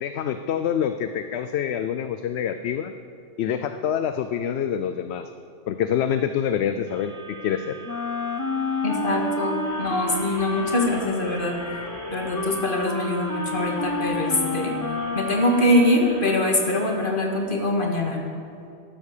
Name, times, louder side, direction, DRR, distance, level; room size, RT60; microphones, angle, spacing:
voice 1, 0.0-2.9 3.4-5.3 5.7-7.8, left 9 dB, 65° left, 10 dB, 0.8 m, -26 dB
sound 1, 6.9-16.9, right 3 dB, 70° right, 3.1 m, -42 dB
Wind instrument woodwind instrument, 7.8-16.0, left 2 dB, 20° left, 0.5 m, -29 dB
voice 2, 8.8-11.6 12.1-14.8 15.2-18.2, left 1 dB, 45° left, 1 dB, 2.0 m, -23 dB
14.0 x 12.0 x 6.6 m, 2.6 s
omnidirectional pair, 1.3 m